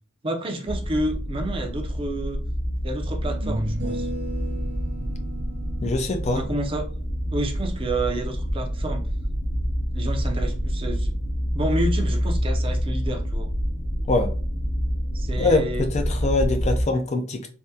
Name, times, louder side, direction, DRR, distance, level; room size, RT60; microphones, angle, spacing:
voice 1, 0.2-2.4 2.8-4.1 6.3-6.8 7.3-9.0 9.9-11.1 11.5-13.5 15.1-15.9, right 1 dB, 25° right, 3 dB, 0.5 m, -29 dB
sound 1, 0.7-16.8, equal, 80° left, 0.7 m, -27 dB
sound 2, 2.1-2.2 3.2-8.5, right 1 dB, 40° right, 0.9 m, -36 dB
voice 2, 5.8-6.4 14.1-14.3 15.4-17.5, left 2 dB, 35° left, 6 dB, 0.4 m, -23 dB
3.4 x 2.2 x 2.7 m, 0.39 s
head